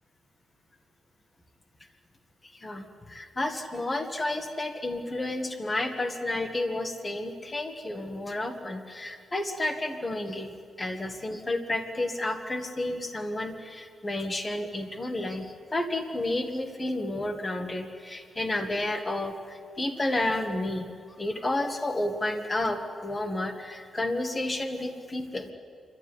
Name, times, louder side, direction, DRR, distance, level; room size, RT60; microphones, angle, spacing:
voice 1, 2.5-10.5 10.8-20.9 21.2-25.5, left 1 dB, 20° left, 7 dB, 1.6 m, -31 dB
28.0 x 12.5 x 9.8 m, 2.2 s
wide cardioid pair, 160°, 0 cm